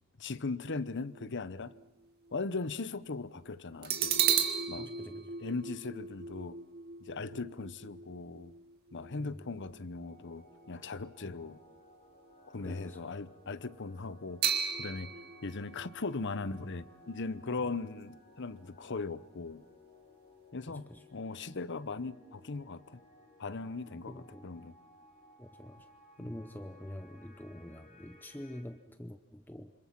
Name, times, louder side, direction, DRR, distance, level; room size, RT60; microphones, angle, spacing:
voice 1, 0.2-1.7 2.3-4.2 4.7-4.9 5.4-6.6 7.0-8.5 8.9-11.6 12.5-15.1 15.4-19.6 20.5-23.0 23.4-24.7 26.2-26.3, left 3 dB, 55° left, 0.9 m, -39 dB
sound 1, 0.9-2.4 2.9-3.0 3.8-11.3 11.6-11.8 14.4-18.2 18.5-18.6, right 7 dB, 45° right, 1.9 m, -36 dB
voice 2, 4.7-5.4 9.1-9.4 11.2-11.4 12.6-13.0 20.7-21.0 24.1-24.5 25.4-25.9 26.2-29.7, left 1 dB, 10° left, 0.8 m, -46 dB
sound 2, 10.0-28.6, left 1 dB, 30° left, 5.8 m, -60 dB
27.5 x 26.0 x 6.0 m
head